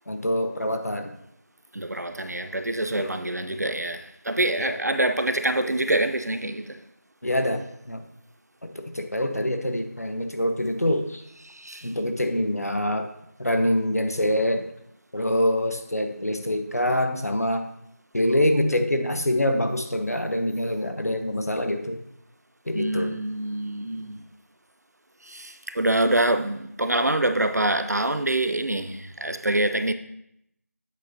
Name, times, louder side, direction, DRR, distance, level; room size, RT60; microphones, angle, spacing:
voice 1, 0.1-1.2 2.9-3.2 4.6-4.8 5.6-5.7 7.2-8.0 8.6-11.2 11.8-13.1 13.4-14.6 15.1-17.7 18.1-22.0 22.7-23.1, left 1 dB, 65° left, 0.8 m, -25 dB
voice 2, 1.7-6.8 11.4-11.9 22.7-24.2 25.2-29.9, right 1 dB, 75° right, 0.6 m, -25 dB
8.2 x 6.8 x 2.7 m
figure-of-eight pair, 180°, 9 cm